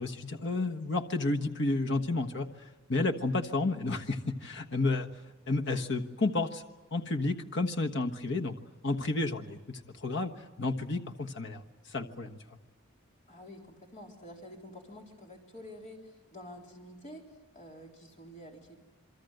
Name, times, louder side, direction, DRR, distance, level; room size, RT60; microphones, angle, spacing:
voice 1, 0.0-2.5 2.9-5.1 5.5-6.6 6.9-8.5 8.8-10.3 10.6-11.6 11.9-12.4, left 2 dB, 60° left, 4 dB, 1.3 m, -31 dB
voice 2, 13.3-18.8, left 1 dB, 35° left, 1 dB, 3.6 m, -49 dB
28.0 x 23.5 x 7.9 m, 1.1 s
head